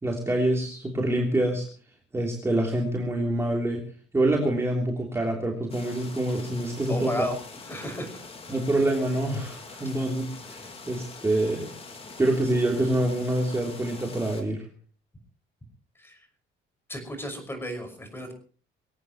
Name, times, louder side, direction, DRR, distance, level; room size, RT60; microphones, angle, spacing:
voice 1, 0.0-1.7 2.1-3.8 4.1-7.1 8.5-11.7 12.2-14.6, right 1 dB, 15° right, 0 dB, 3.3 m, -26 dB
sound 1, 5.7-14.4, left 4 dB, 30° left, 3.6 m, -44 dB
voice 2, 6.9-7.3 7.7-8.1 16.0-16.3 16.9-18.3, left 1 dB, 10° left, 6 dB, 5.8 m, -33 dB
23.5 x 17.5 x 3.1 m, 0.41 s
cardioid pair, 160°, 20 cm